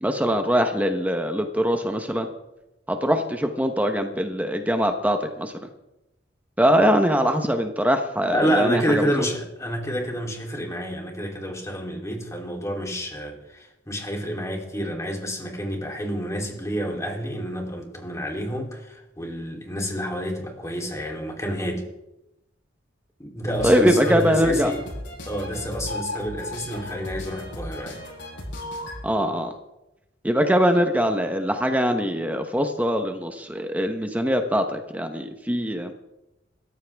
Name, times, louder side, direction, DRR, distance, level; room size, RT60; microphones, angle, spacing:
voice 1, 0.0-2.3 2.9-5.5 6.6-9.1 23.6-24.7 29.0-29.5 30.2-35.9, equal, 10° right, 5 dB, 1.0 m, -22 dB
voice 2, 8.3-21.8 23.2-24.8 25.3-28.0, equal, 15° left, 0 dB, 3.3 m, -28 dB
sound 1, 23.5-29.0, left 1 dB, 80° left, 7.7 m, -36 dB
26.0 x 14.5 x 3.5 m, 0.94 s
head